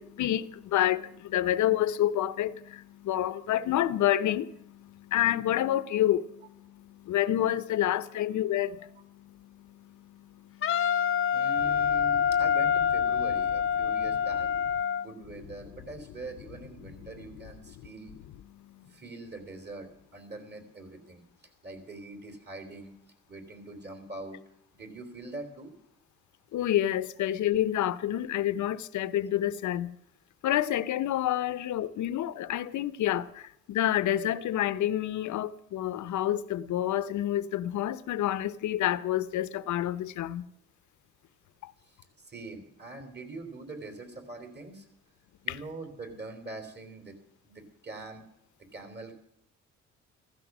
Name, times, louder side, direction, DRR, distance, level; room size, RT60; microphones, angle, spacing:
voice 1, 0.0-11.3 12.1-12.2 14.9-15.0 17.8-17.9 18.5-18.8 26.5-30.0 30.4-40.5 41.6-41.7, left 12 dB, 75° left, 0.9 m, -29 dB
Wind instrument woodwind instrument, 10.6-15.1, left 8 dB, 45° left, 0.8 m, -26 dB
voice 2, 11.3-14.5 15.0-18.1 18.9-21.2 21.6-22.9 23.3-24.4 24.7-25.7 41.9-44.9 45.4-47.2 47.4-48.2 48.7-49.1, right 2 dB, 35° right, 3.5 m, -43 dB
15.0 x 14.5 x 6.1 m
cardioid pair, 90°, 30 cm